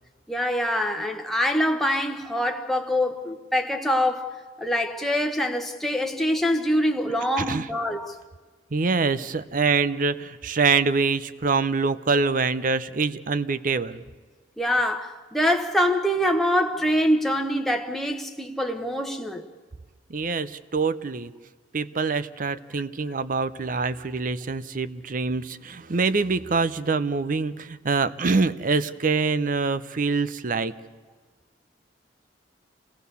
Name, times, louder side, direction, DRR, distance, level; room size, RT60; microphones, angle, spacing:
voice 1, 0.3-8.1 14.6-19.4, equal, ahead, 1.1 m, -24 dB
voice 2, 7.4-7.7 8.7-14.0 20.1-21.3 21.7-30.7, right 4 dB, 45° right, 0.6 m, -25 dB
26.0 x 18.0 x 6.9 m
head